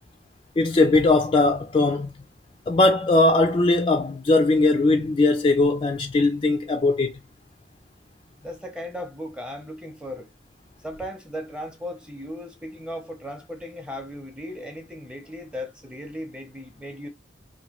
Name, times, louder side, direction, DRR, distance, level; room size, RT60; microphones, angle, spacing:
voice 1, 0.6-2.1 2.7-7.1, left 2 dB, 30° left, 0.3 m, -20 dB
voice 2, 8.4-10.3 10.8-17.1, equal, 5° right, 0.6 m, -36 dB
3.0 x 2.5 x 2.8 m
head